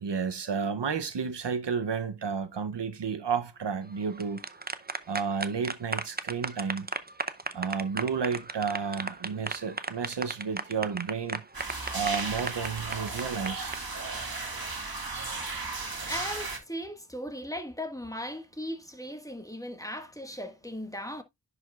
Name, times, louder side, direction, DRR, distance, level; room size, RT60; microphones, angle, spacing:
voice 1, 0.0-4.4 5.1-6.9 7.5-11.4 11.9-13.8, right 6 dB, 75° right, 0.7 m, -31 dB
sound 1, 4.0-13.8, right 3 dB, 25° right, 0.6 m, -35 dB
sound 2, 11.5-16.6, right 3 dB, 55° right, 1.9 m, -35 dB
voice 2, 15.8-21.2, equal, 10° left, 1.5 m, -38 dB
10.5 x 5.0 x 2.3 m
wide cardioid pair, 50°, 42 cm